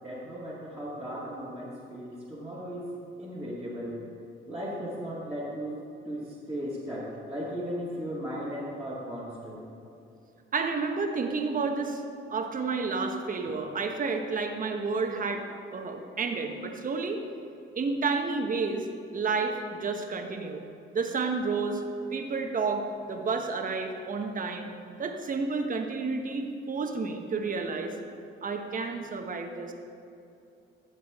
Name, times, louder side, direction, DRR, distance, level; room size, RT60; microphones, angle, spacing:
voice 1, 0.0-2.9 3.2-4.0 4.5-5.8 6.0-9.6, equal, 5° right, -10 dB, 2.1 m, -36 dB
voice 2, 10.5-12.0 12.3-15.4 15.7-17.2 17.7-18.9 19.1-20.6 20.9-21.8 22.1-24.7 25.0-27.9 28.4-29.7, right 4 dB, 45° right, 4 dB, 1.1 m, -30 dB
14.0 x 7.3 x 3.6 m, 2.7 s
cardioid pair, 90°, 20 cm